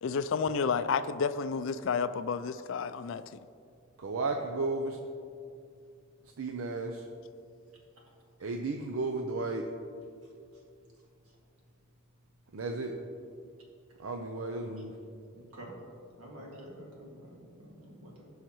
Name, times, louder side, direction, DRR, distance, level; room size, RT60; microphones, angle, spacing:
voice 1, 0.0-3.2, left 5 dB, 60° left, 13 dB, 0.3 m, -30 dB
voice 2, 4.0-5.0 6.4-7.0 8.4-9.6 12.5-12.9 14.0-14.9, right 3 dB, 70° right, 3 dB, 0.6 m, -33 dB
voice 3, 15.3-15.8 16.2-18.3, right 1 dB, 90° right, -3 dB, 2.2 m, -49 dB
15.5 x 5.6 x 3.0 m, 2.4 s
head